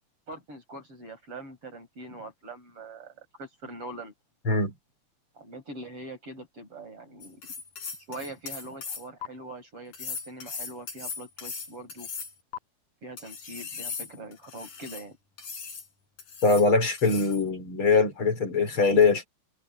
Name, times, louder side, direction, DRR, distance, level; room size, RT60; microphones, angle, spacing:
voice 1, 0.3-4.1 5.4-7.4 8.1-12.1 13.0-15.2, right 2 dB, 45° right, 8.7 m, -43 dB
sound 1, 7.2-9.3 9.9-12.6 13.2-15.0 15.4-15.9 16.2-16.7 17.0-17.4, left 5 dB, 90° left, 6.0 m, -38 dB
voice 2, 16.4-19.3, left 4 dB, 40° left, 5.7 m, -22 dB
omnidirectional pair, 3.5 m